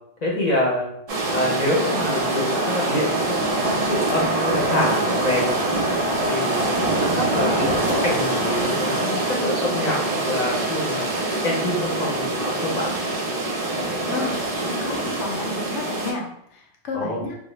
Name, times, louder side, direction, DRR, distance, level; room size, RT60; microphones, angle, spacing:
voice 1, 0.2-0.9 1.3-5.5 6.2-11.0 11.4-12.9 16.9-17.2, left 1 dB, 45° left, -3 dB, 0.7 m, -26 dB
sound 1, 1.1-16.1, right 2 dB, 65° right, 0.3 m, -24 dB
voice 2, 14.6-17.4, left 3 dB, 85° left, 1 dB, 0.9 m, -31 dB
2.2 x 2.1 x 3.0 m, 0.71 s
omnidirectional pair, 1.2 m